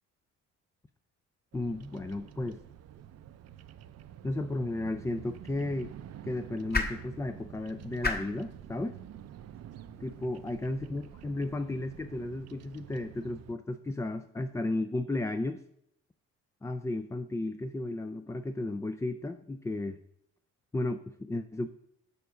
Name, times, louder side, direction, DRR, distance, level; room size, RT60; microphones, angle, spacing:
voice 1, 1.5-2.6 4.2-5.9 6.2-9.0 10.0-15.6 16.6-20.0 20.7-21.7, left 2 dB, 10° left, 10 dB, 0.3 m, -34 dB
Bird vocalization bird call bird song, 1.5-13.5, right 10 dB, 55° right, 0.5 m, -48 dB
sound 1, 4.9-11.1, left 3 dB, 30° left, 1.4 m, -39 dB
6.9 x 6.8 x 4.9 m, 0.73 s
cardioid pair, 90°, 30 cm